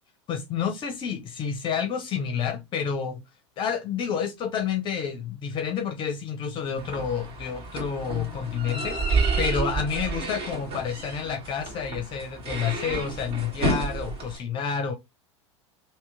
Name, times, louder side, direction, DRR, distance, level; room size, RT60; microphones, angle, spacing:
voice 1, 0.3-3.2 3.6-14.9, left 7 dB, 35° left, 0.7 m, -29 dB
sound 1, 6.8-14.4, right 3 dB, 35° right, 1.7 m, -30 dB
3.0 x 2.9 x 3.4 m
figure-of-eight pair, 85°, 15 cm